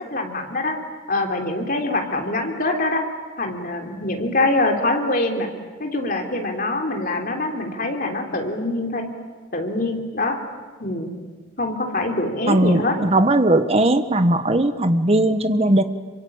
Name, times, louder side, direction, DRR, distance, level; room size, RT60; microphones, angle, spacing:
voice 1, 0.1-0.7 1.1-3.0 3.4-5.5 5.8-9.1 9.5-10.4 10.8-11.1 11.6-12.9, left 2 dB, 45° left, 3 dB, 3.5 m, -24 dB
voice 2, 12.5-15.8, right 1 dB, 30° right, 10 dB, 1.2 m, -18 dB
27.0 x 24.0 x 8.8 m, 1.4 s
head